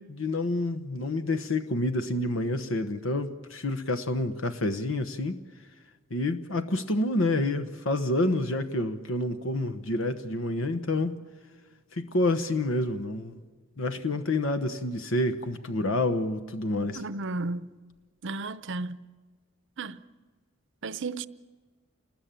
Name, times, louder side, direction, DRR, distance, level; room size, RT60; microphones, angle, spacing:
voice 1, 0.0-5.4 6.1-11.2 11.9-13.4 13.8-17.0, left 2 dB, 70° left, 1.1 m, -28 dB
voice 2, 17.0-17.7 18.2-19.0 19.8-20.0 20.8-21.3, right 3 dB, 60° right, 0.7 m, -33 dB
28.5 x 20.0 x 9.0 m
head